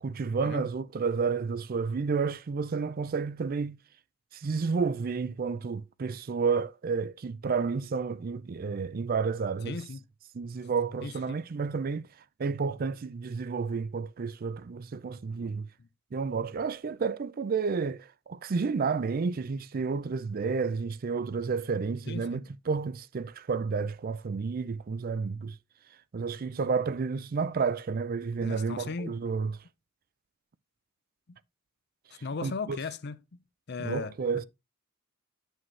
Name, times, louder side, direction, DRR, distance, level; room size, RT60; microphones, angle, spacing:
voice 1, 0.0-3.8 4.3-9.8 10.3-12.1 12.4-15.7 16.1-22.4 22.7-25.6 26.1-29.6 32.1-32.8 33.8-34.4, right 5 dB, 45° right, 0.4 m, -31 dB
voice 2, 9.6-10.0 11.0-11.4 22.1-22.4 28.4-29.2 31.3-31.4 32.2-33.4 33.7-34.1, left 4 dB, 55° left, 0.6 m, -37 dB
9.2 x 6.2 x 3.2 m
head